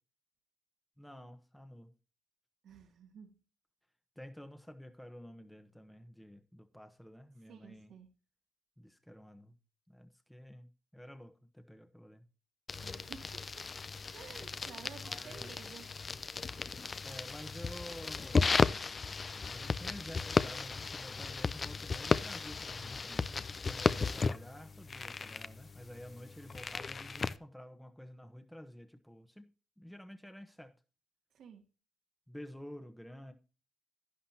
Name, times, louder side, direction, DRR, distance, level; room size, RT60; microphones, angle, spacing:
voice 1, 1.0-1.9 4.2-7.9 8.8-9.5 9.9-12.2 15.0-15.5 17.0-18.4 19.4-23.3 23.6-29.5 29.8-30.7 32.3-33.3, equal, 5° left, 1.2 m, -50 dB
voice 2, 2.6-3.4 7.5-8.1 12.8-13.7 14.1-15.9 31.3-31.7, right 7 dB, 70° right, 2.6 m, -53 dB
sound 1, 12.7-27.4, left 4 dB, 35° left, 0.6 m, -35 dB
11.5 x 10.0 x 2.9 m
cardioid pair, 90°, 0 cm